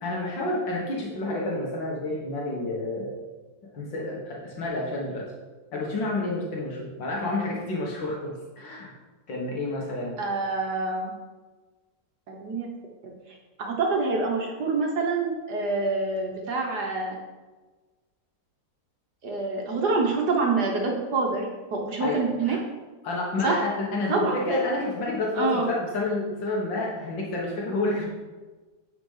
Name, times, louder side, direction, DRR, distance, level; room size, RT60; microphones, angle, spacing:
voice 1, 0.0-3.1 3.7-5.3 5.7-8.9 9.3-10.2 22.0-22.6 23.0-28.1, left 2 dB, 80° left, -3 dB, 2.2 m, -29 dB
voice 2, 10.2-11.1 12.3-12.7 13.6-17.2 19.2-22.6 23.4-23.6 24.1-24.4 25.3-25.7, right 3 dB, 60° right, 0 dB, 1.8 m, -26 dB
9.7 x 5.1 x 5.6 m, 1.3 s
omnidirectional pair, 2.0 m